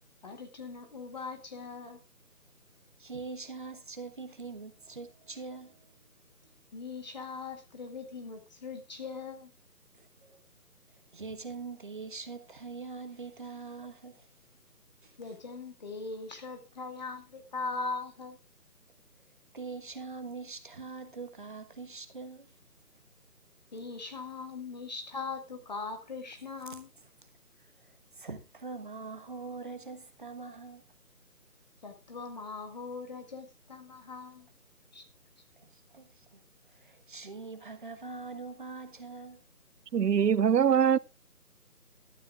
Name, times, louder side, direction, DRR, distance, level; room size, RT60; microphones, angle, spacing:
voice 1, 0.2-2.0 6.7-9.5 15.2-18.4 23.7-26.9 31.8-34.5 34.9-35.1, left 4 dB, 25° left, 2.0 m, -40 dB
voice 2, 3.0-5.9 9.9-10.4 11.1-14.3 15.0-15.2 19.5-22.5 26.7-26.8 27.2-27.3 27.6-30.8 35.6-36.4 36.7-39.4, right 4 dB, 30° right, 1.3 m, -43 dB
voice 3, 39.9-41.0, right 8 dB, 85° right, 0.6 m, -23 dB
14.0 x 13.0 x 2.4 m
figure-of-eight pair, 165°, 47 cm